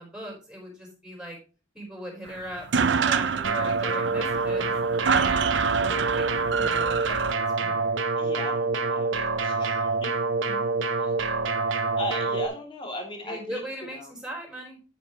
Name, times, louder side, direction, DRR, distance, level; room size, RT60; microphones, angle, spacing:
voice 1, 0.0-1.4 1.7-2.7 3.0-4.7 5.1-8.0 10.4-10.8 13.2-14.8, equal, 5° right, -2 dB, 4.3 m, -39 dB
sound 1, 2.3-2.4 2.5-7.3, right 6 dB, 65° right, 0.5 m, -27 dB
sound 2, 3.4-12.5, right 3 dB, 80° right, 0.9 m, -26 dB
voice 2, 8.2-10.1 11.0-11.7 12.0-14.1, left 1 dB, 25° left, 1 dB, 2.6 m, -38 dB
9.6 x 8.4 x 3.0 m, 0.34 s
head